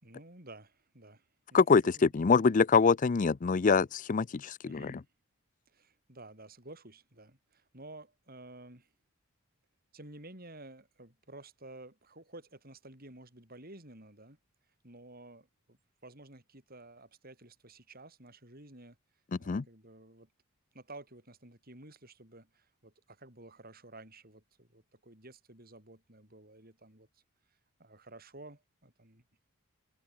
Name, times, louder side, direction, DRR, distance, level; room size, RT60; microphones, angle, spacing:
voice 1, 0.0-2.1 4.6-5.0 5.7-8.9 9.9-14.4 14.8-19.0 19.4-20.3 20.7-27.2 27.8-29.2, right 2 dB, 45° right, 7.2 m, -52 dB
voice 2, 2.1-5.0 19.5-19.6, left 5 dB, 35° left, 0.4 m, -25 dB
head